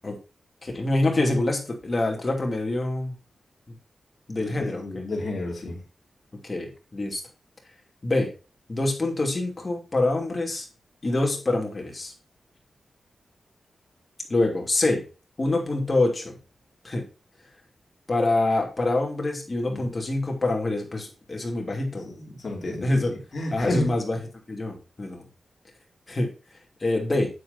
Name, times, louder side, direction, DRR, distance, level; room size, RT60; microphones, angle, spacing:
voice 1, 0.6-3.1 3.7-3.8 4.3-5.0 6.4-7.2 8.0-8.3 8.7-10.7 11.0-12.1 14.3-15.0 15.4-16.4 16.8-17.0 18.1-22.1 22.8-23.1 23.5-24.2 24.5-25.3 26.1-26.3 26.8-27.3, left 2 dB, 30° left, 2.7 m, -25 dB
voice 2, 4.4-5.8 19.7-19.8 21.9-24.0, left 1 dB, 50° left, 3.0 m, -31 dB
9.4 x 7.6 x 2.7 m
wide cardioid pair, 115°, 0 cm